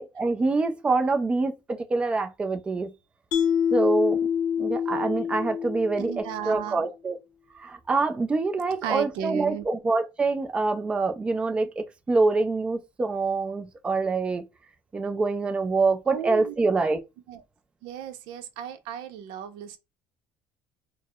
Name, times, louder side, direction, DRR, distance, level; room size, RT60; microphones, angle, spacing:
voice 1, 0.0-2.9 3.7-4.2 4.6-7.2 7.5-14.5 14.9-17.0, right 3 dB, 15° right, 0.3 m, -25 dB
Mallet percussion, 3.3-6.6, left 8 dB, 50° left, 0.4 m, -26 dB
voice 2, 6.0-6.9 8.8-9.6 16.1-16.5 17.3-17.4 17.8-19.8, right 9 dB, 80° right, 0.6 m, -34 dB
4.5 x 2.0 x 2.2 m
cardioid pair, 180°, 8 cm